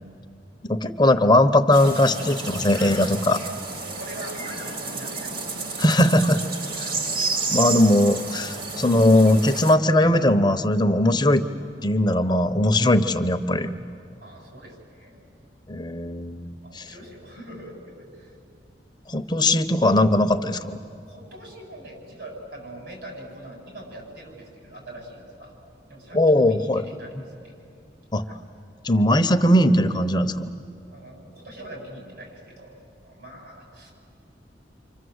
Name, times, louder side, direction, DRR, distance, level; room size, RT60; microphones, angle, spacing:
voice 1, 0.7-3.4 5.8-6.4 6.8-6.9 7.5-11.5 11.8-13.7 15.7-16.8 19.1-20.8 26.1-26.8 28.1-28.2 28.8-30.5, left 1 dB, 25° left, 8 dB, 0.8 m, -19 dB
sound 1, 1.7-9.7, right 3 dB, 55° right, 2.1 m, -31 dB
voice 2, 3.8-6.3 6.6-6.7 14.2-15.2 16.6-18.3 21.1-25.5 25.9-27.5 28.2-28.4 30.8-33.9, right 1 dB, 70° right, 0 dB, 7.9 m, -43 dB
29.0 x 26.0 x 8.0 m, 2.4 s
head